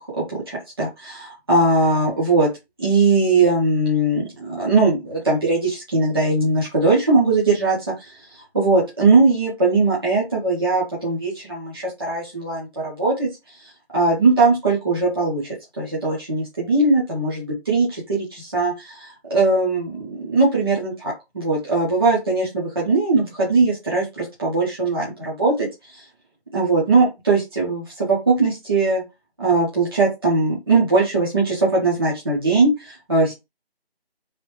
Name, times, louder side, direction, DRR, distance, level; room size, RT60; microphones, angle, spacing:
voice 1, 0.0-2.5 2.8-8.1 8.5-13.3 13.9-15.4 15.8-25.7 26.5-29.0 29.4-33.3, right 3 dB, 25° right, -6 dB, 0.8 m, -20 dB
3.2 x 2.7 x 3.0 m, 0.23 s
figure-of-eight pair, 165°, 31 cm